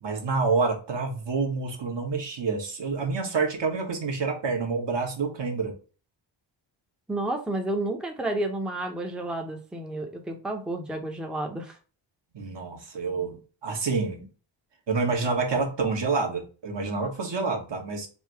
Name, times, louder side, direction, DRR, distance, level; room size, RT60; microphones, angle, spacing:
voice 1, 0.0-5.7 12.3-14.2 14.9-18.1, right 4 dB, 65° right, 1.3 m, -28 dB
voice 2, 7.1-11.8, right 2 dB, ahead, 0.6 m, -31 dB
3.5 x 2.6 x 4.4 m
wide cardioid pair, 150°, 46 cm